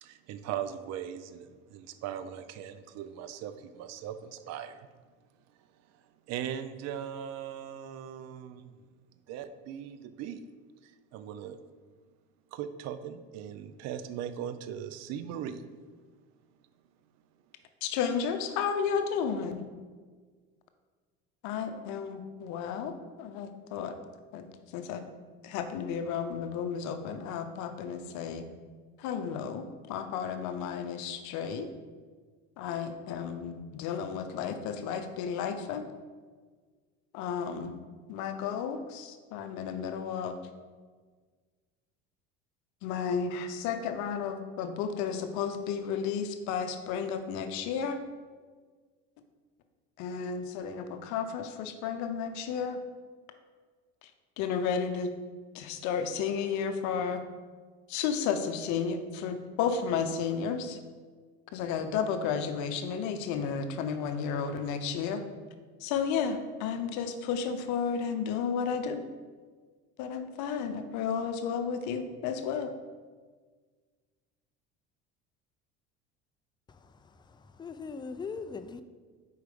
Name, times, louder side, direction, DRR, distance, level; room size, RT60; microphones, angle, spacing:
voice 1, 0.0-4.9 6.3-8.7 9.3-10.5 11.1-11.6 12.5-15.6, right 9 dB, 55° right, 11 dB, 0.5 m, -39 dB
voice 2, 17.8-19.6 21.4-23.9 24.3-24.5 24.7-25.0 25.4-28.5 29.0-31.7 32.6-35.8 37.1-37.7 38.1-40.4 42.8-48.0 50.0-52.8 54.4-55.1 55.5-57.2 57.9-60.8 61.5-65.2 65.8-69.0 70.0-72.7, left 6 dB, 70° left, 8 dB, 0.7 m, -32 dB
voice 3, 76.7-78.8, left 5 dB, 15° left, 10 dB, 0.4 m, -41 dB
4.7 x 4.7 x 5.2 m, 1.5 s
supercardioid pair, 85°, 31 cm